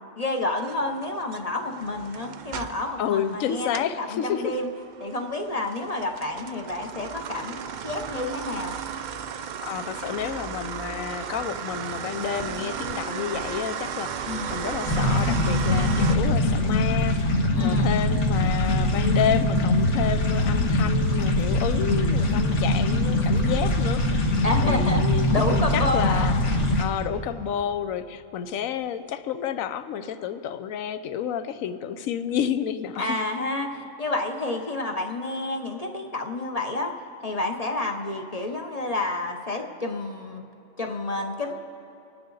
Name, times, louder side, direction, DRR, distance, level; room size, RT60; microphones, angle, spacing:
voice 1, 0.2-3.7 4.0-4.7 5.0-8.7 14.3-14.6 17.6-17.9 24.4-26.3 33.0-36.9 37.2-40.4 40.8-41.5, left 2 dB, 35° left, 3 dB, 0.7 m, -29 dB
sound 1, 0.6-4.0 4.4-16.2, right 7 dB, 85° right, 0.4 m, -35 dB
voice 2, 3.0-4.6 9.6-24.3 24.6-26.3 26.8-33.2, left 8 dB, 80° left, 11 dB, 1.1 m, -30 dB
sound 2, 14.9-26.8, left 1 dB, 60° left, 1.6 m, -22 dB
26.0 x 9.5 x 3.9 m, 3.0 s
omnidirectional pair, 1.4 m